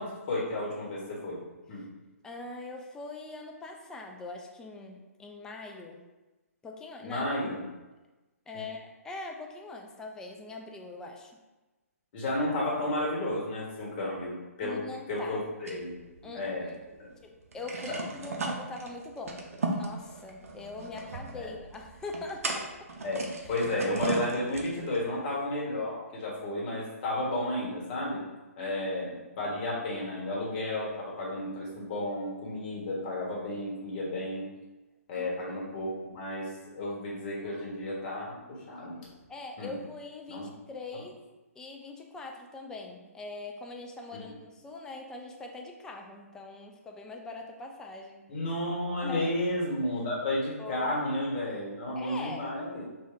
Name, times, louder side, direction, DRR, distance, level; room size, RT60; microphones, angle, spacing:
voice 1, 0.0-1.4 1.7-1.8 7.0-7.6 8.5-8.6 12.1-14.8 15.1-15.9 16.3-16.7 17.0-17.1 17.9-18.0 21.3-21.5 23.0-28.2 28.6-34.5 35.1-39.0 39.6-39.8 40.3-40.5 44.1-44.2 48.3-52.9, left 1 dB, 40° left, -4 dB, 1.3 m, -32 dB
voice 2, 2.2-6.0 6.6-7.3 8.5-11.3 14.6-15.4 16.2-16.8 17.2-22.9 23.4-23.6 28.6-28.8 35.2-35.3 39.3-41.1 41.6-48.3 49.0-49.3 50.6-50.9 51.9-52.5, left 3 dB, 5° left, 2 dB, 0.3 m, -42 dB
sound 1, 15.7-16.8 17.1-17.2 17.5-25.0, right 3 dB, 65° right, 0.7 m, -37 dB
3.3 x 2.6 x 3.6 m, 1.1 s
figure-of-eight pair, 135°, 8 cm